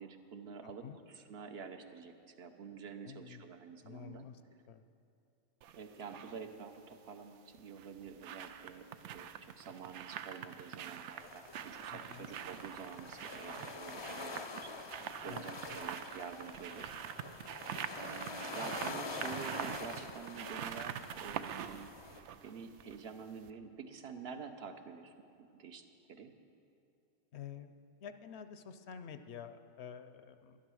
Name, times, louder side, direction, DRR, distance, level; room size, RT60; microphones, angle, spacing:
voice 1, 0.0-4.3 5.7-15.0 15.2-16.9 17.9-21.9 22.4-26.3, right 6 dB, 65° right, 6 dB, 1.0 m, -48 dB
voice 2, 0.6-1.0 3.0-3.4 3.8-4.4 4.7-4.8 11.9-12.3 15.3-15.8 17.7-17.9 27.3-27.7 28.0-30.6, left 7 dB, 75° left, 10 dB, 0.9 m, -49 dB
sound 1, 5.6-6.3 7.6-23.1 23.4-23.5, right 9 dB, 90° right, 0.9 m, -45 dB
sound 2, 11.2-22.2, left 3 dB, 30° left, 0.5 m, -46 dB
11.5 x 11.5 x 6.3 m, 2.6 s
omnidirectional pair, 1.2 m